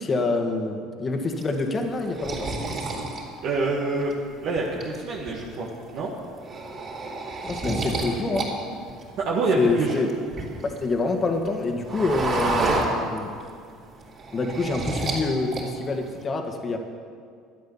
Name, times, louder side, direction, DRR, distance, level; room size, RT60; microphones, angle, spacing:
voice 1, 0.0-2.5 7.4-8.5 9.6-10.1 10.8-13.3 14.3-16.8, left 3 dB, 35° left, 4 dB, 1.6 m, -26 dB
sound 1, 1.4-4.1 4.6-5.3 5.7-5.9 6.2-8.5 8.8-10.8 11.2-13.5 13.8-15.2 15.5-16.1, right 3 dB, 45° right, 3.7 m, -30 dB
voice 2, 3.4-4.1 4.4-6.1 9.2-10.0 12.6-12.8, right 3 dB, 60° right, -3 dB, 1.6 m, -26 dB
12.5 x 9.4 x 7.2 m, 2.2 s
supercardioid pair, 85°, 0 cm